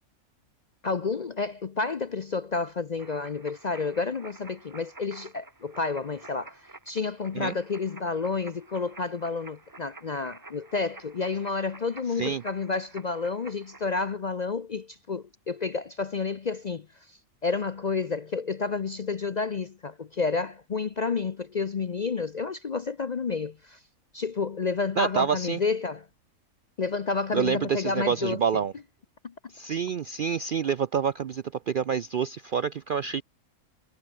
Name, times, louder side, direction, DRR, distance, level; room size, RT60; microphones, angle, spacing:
voice 1, 0.8-6.6 6.9-23.8 24.1-26.0 26.8-28.4 29.2-29.3, left 4 dB, 45° left, 0.6 m, -30 dB
sound 1, 3.0-14.1, right 2 dB, 15° right, 0.9 m, -49 dB
voice 2, 25.0-25.6 27.3-28.7 29.5-33.2, right 7 dB, 60° right, 0.5 m, -27 dB
omnidirectional pair, 1.5 m